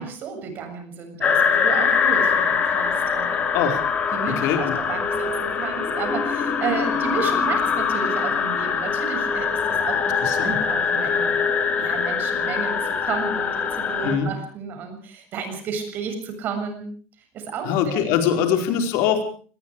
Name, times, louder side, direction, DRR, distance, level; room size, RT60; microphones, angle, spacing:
voice 1, 0.0-3.4 4.1-11.4 11.7-16.9 17.3-18.2, right 6 dB, 40° right, 7 dB, 7.3 m, -32 dB
sound 1, 1.2-14.1, left 6 dB, 25° left, 3.4 m, -23 dB
voice 2, 4.3-4.8 10.2-10.5 14.0-14.3 17.6-19.2, left 8 dB, 65° left, 6 dB, 4.8 m, -22 dB
25.0 x 21.0 x 4.9 m, 0.43 s
cardioid pair, 170°, 5 cm